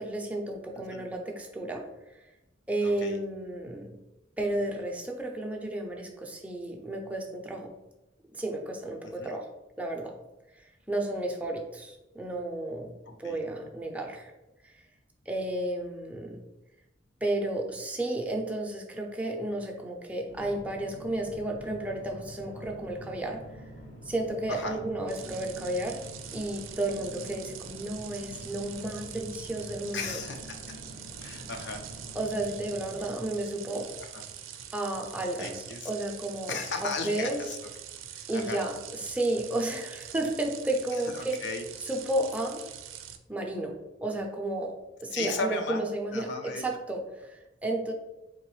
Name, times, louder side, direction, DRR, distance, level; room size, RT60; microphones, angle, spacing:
voice 1, 0.0-1.9 2.1-2.2 2.7-3.9 4.4-7.7 8.3-9.5 9.8-10.1 10.9-12.9 13.2-14.3 14.6-14.7 15.3-16.4 17.2-23.4 24.1-26.0 26.3-30.2 32.1-33.9 34.7-37.4 38.3-41.4 41.9-42.6 43.3-43.7 44.0-44.7 45.0-47.9, right 1 dB, 5° right, 1 dB, 0.5 m, -32 dB
voice 2, 2.8-3.2 9.0-9.3 13.2-13.4 24.5-24.8 29.9-30.6 31.2-31.8 34.0-34.2 35.4-35.9 36.5-37.7 38.1-38.6 40.9-41.6 45.1-45.8 46.1-46.6, left 4 dB, 60° left, 5 dB, 0.5 m, -36 dB
sound 1, 20.3-34.7, equal, 75° left, 1.3 m, -46 dB
sound 2, 25.1-43.2, right 9 dB, 90° right, 0.4 m, -44 dB
3.9 x 3.0 x 3.1 m, 0.99 s
head